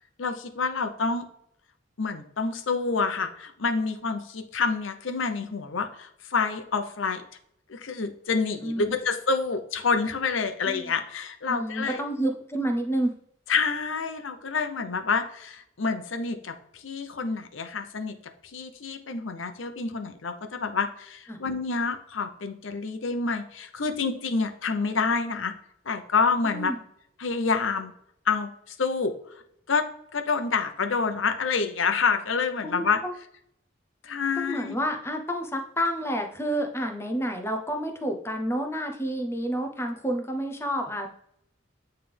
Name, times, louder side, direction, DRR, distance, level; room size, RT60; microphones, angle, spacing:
voice 1, 0.2-1.3 2.0-7.2 7.7-12.0 13.5-18.2 18.4-25.5 25.8-26.7 27.2-27.9 28.3-29.4 29.7-29.9 30.1-33.0 34.0-34.8, left 4 dB, 85° left, 7 dB, 0.7 m, -28 dB
voice 2, 8.6-8.9 10.7-10.9 11.5-13.1 21.3-21.4 26.4-26.8 32.6-33.1 34.3-41.1, equal, 15° left, 4 dB, 0.6 m, -29 dB
8.9 x 3.3 x 3.4 m, 0.72 s
head